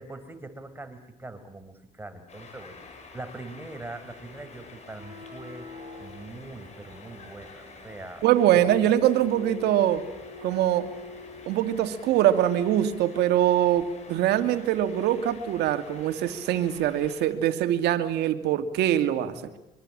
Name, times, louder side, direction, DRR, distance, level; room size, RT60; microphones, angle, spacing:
voice 1, 0.0-5.7 6.0-8.2 8.5-8.6, right 2 dB, 15° right, 8 dB, 4.7 m, -42 dB
sound 1, 2.3-17.3, left 4 dB, 40° left, 7.5 m, -48 dB
sound 2, 4.8-11.8, left 4 dB, 35° right, 7.3 m, -46 dB
voice 2, 8.2-10.0 10.4-10.9 11.5-19.4, right 11 dB, 85° right, 9 dB, 2.4 m, -23 dB
25.5 x 24.0 x 8.8 m, 0.92 s
cardioid pair, 110°, 17 cm